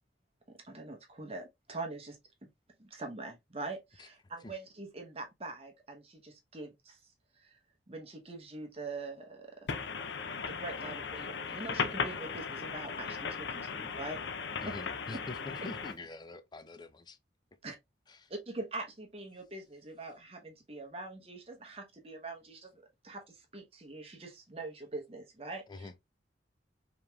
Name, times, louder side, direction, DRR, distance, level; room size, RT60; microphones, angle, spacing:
voice 1, 0.5-2.5 2.8-7.0 7.4-7.6 7.9-9.7 10.6-12.1 12.5-14.2 14.7-14.8 15.6-15.7 17.6-17.8 18.3-25.9, right 2 dB, 30° right, 0.9 m, -43 dB
voice 2, 9.7-15.9, left 5 dB, 70° left, 0.5 m, -37 dB
voice 3, 14.6-17.2 18.1-18.3 25.7-25.9, left 2 dB, 25° left, 0.4 m, -45 dB
5.0 x 3.0 x 2.3 m
head